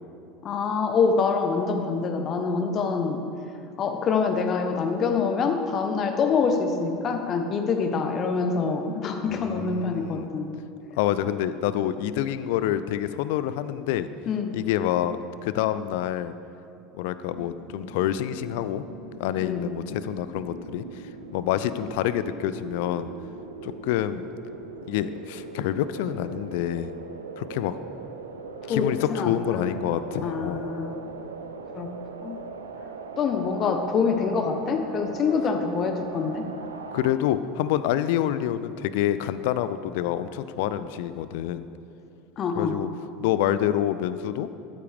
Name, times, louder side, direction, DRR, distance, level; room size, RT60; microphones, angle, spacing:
voice 1, 0.4-3.3 3.8-10.5 14.3-14.6 19.4-19.6 28.7-29.6 30.1-30.9 31.7-31.9 32.2-32.4 33.2-36.5 42.4-42.8, left 5 dB, 40° left, 6 dB, 1.0 m, -25 dB
voice 2, 9.3-10.3 11.0-14.1 14.5-15.2 15.4-16.3 17.0-18.8 19.2-20.8 21.3-23.1 23.6-24.3 24.9-27.0 27.4-27.8 28.7-30.7 36.9-41.7 42.5-42.9 43.2-44.5, left 11 dB, 65° left, 13 dB, 0.4 m, -27 dB
sound 1, 17.3-37.1, right 4 dB, 80° right, 0.6 m, -40 dB
13.0 x 9.3 x 3.5 m, 2.8 s
figure-of-eight pair, 75°, 0 cm